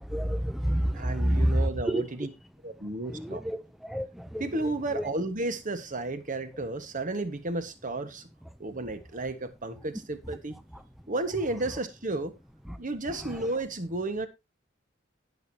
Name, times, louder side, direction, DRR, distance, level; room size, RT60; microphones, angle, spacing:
voice 1, 0.1-1.5 1.9-2.0 3.1-4.4, equal, ahead, 0.5 m, -28 dB
voice 2, 0.9-2.3 2.6-3.4 4.4-8.3 8.6-10.5 11.1-12.3 12.8-14.3, right 2 dB, 40° right, 1.5 m, -32 dB
19.0 x 6.5 x 2.8 m
head